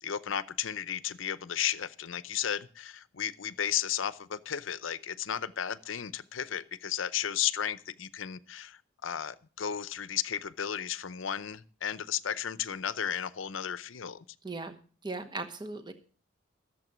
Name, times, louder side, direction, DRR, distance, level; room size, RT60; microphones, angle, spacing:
voice 1, 0.0-14.2, left 9 dB, 80° left, 0.7 m, -34 dB
voice 2, 14.4-15.9, right 3 dB, 20° right, 1.0 m, -38 dB
14.0 x 7.5 x 6.1 m
head